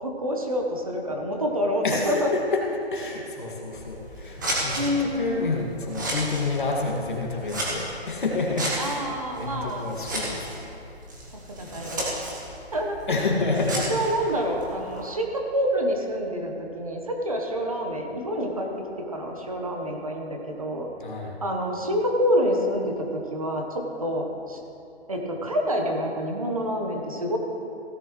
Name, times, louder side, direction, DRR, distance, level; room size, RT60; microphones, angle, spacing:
voice 1, 0.0-2.3 4.8-5.4 8.8-9.8 11.3-12.0 12.7-13.2 13.7-18.7 19.0-20.9 21.4-24.6 25.1-27.4, equal, 30° right, 1 dB, 1.1 m, -27 dB
voice 2, 1.8-2.6 2.9-9.0 9.4-10.7 13.1-14.1 21.0-21.4, left 3 dB, 50° left, -1 dB, 2.0 m, -29 dB
Scissors, 3.6-15.1, right 1 dB, 15° right, 1.4 m, -34 dB
16.5 x 11.0 x 3.1 m, 2.8 s
hypercardioid pair, 180°, 33 cm